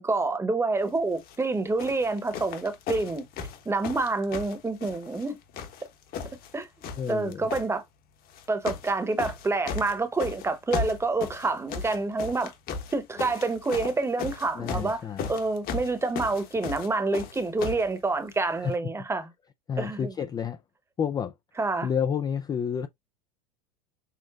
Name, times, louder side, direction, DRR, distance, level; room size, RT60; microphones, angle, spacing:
voice 1, 0.0-3.2 3.6-5.4 6.5-6.7 7.1-7.8 8.5-12.5 12.9-19.3 19.8-20.1 21.6-21.9, right 3 dB, 15° right, 1.0 m, -27 dB
sound 1, 1.1-1.4 1.8-5.3 5.5-6.5 6.8-7.7 8.3-8.9 9.2-17.9 18.7-18.8, left 6 dB, 45° left, 1.2 m, -36 dB
voice 2, 7.0-7.5 14.5-15.2 18.6-18.9 19.7-20.6 21.0-21.3 21.8-22.9, left 7 dB, 20° left, 0.4 m, -30 dB
6.5 x 2.4 x 2.4 m
hypercardioid pair, 105°, 21 cm